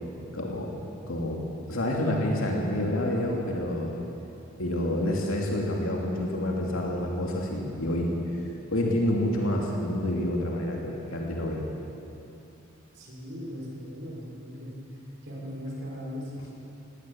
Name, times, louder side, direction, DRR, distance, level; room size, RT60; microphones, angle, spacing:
voice 1, 0.3-0.8 1.1-1.4 1.7-3.9 4.6-8.1 8.7-11.6, left 1 dB, 80° left, -1 dB, 2.8 m, -28 dB
voice 2, 12.9-14.7 15.2-16.5, equal, 55° right, -4 dB, 5.9 m, -38 dB
18.5 x 17.0 x 8.7 m, 3.0 s
head